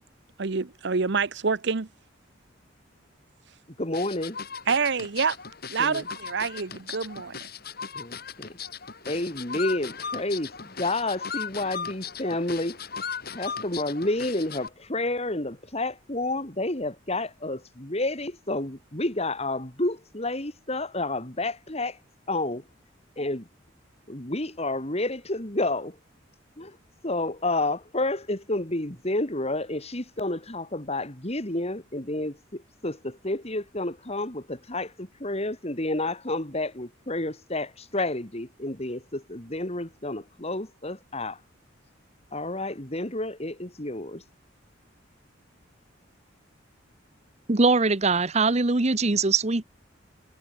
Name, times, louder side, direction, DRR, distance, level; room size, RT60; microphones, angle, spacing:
voice 1, 0.4-1.9 4.7-5.4 5.7-7.4, right 5 dB, 60° right, 0.8 m, -27 dB
voice 2, 3.8-4.4 5.8-6.0 8.0-8.6 9.1-12.8 13.3-21.9 22.3-22.6 23.2-23.4 24.1-26.0 26.6-26.8 27.0-41.4 42.3-44.2, left 2 dB, 30° left, 3.4 m, -30 dB
sound 1, 3.9-14.7, left 6 dB, 50° left, 7.6 m, -37 dB
voice 3, 47.5-49.6, right 3 dB, 35° right, 1.0 m, -22 dB
head